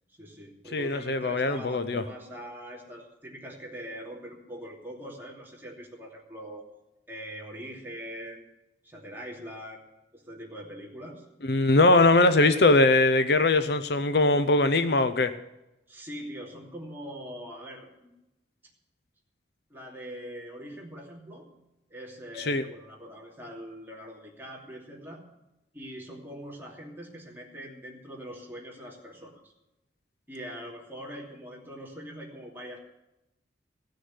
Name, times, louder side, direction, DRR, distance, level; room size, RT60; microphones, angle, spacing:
voice 1, 0.1-6.6 7.1-8.4 8.8-9.8 10.1-11.3 15.9-18.1 19.7-21.5 21.9-25.2 25.7-29.5 30.3-32.8, equal, 10° right, -2 dB, 2.7 m, -42 dB
voice 2, 0.7-2.0 11.5-15.3 22.5-22.6, left 2 dB, 60° left, 11 dB, 0.6 m, -21 dB
16.0 x 6.5 x 9.6 m, 0.94 s
head